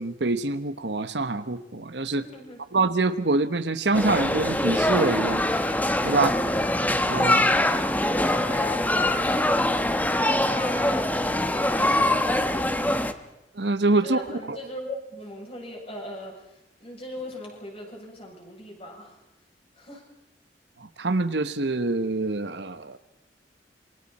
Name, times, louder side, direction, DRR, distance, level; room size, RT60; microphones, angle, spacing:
voice 1, 0.0-2.2 2.7-6.4 7.1-7.5 13.5-14.2 14.5-14.6 20.8-23.0, right 3 dB, 75° right, 11 dB, 1.1 m, -25 dB
voice 2, 2.1-2.6 8.0-9.3 10.2-12.4 14.0-19.2 19.8-20.0, left 1 dB, 35° left, -1 dB, 7.6 m, -39 dB
sound 1, 3.9-13.1, left 1 dB, 10° left, 1.1 m, -23 dB
27.5 x 24.0 x 4.3 m, 0.92 s
head